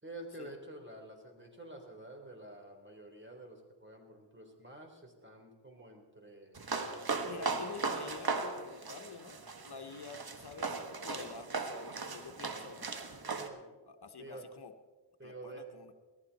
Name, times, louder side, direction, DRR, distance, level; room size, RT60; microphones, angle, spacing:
voice 1, 0.0-6.7 9.8-9.9 13.3-13.8 14.2-14.5 15.2-15.8, right 1 dB, 25° right, 3 dB, 3.8 m, -49 dB
sound 1, 6.6-13.5, right 4 dB, 55° right, 1.5 m, -38 dB
voice 2, 7.3-12.9 13.9-14.7 15.2-15.9, left 4 dB, 60° left, 7 dB, 1.1 m, -48 dB
19.0 x 14.5 x 4.2 m, 1.3 s
cardioid pair, 45°, 44 cm